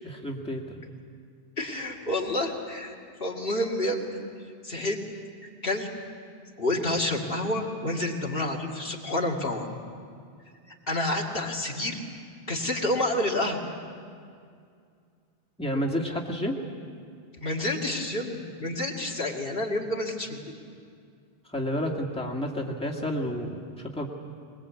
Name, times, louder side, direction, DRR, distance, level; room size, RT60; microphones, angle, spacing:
voice 1, 0.0-0.8 15.6-16.6 21.5-24.1, equal, 5° left, -1 dB, 2.1 m, -30 dB
voice 2, 1.6-2.9 3.2-4.2 4.6-5.0 5.6-5.9 6.6-9.6 10.9-12.0 12.5-13.6 17.4-20.4, left 1 dB, 65° left, 0 dB, 2.3 m, -29 dB
22.0 x 21.5 x 8.4 m, 2.3 s
omnidirectional pair, 1.1 m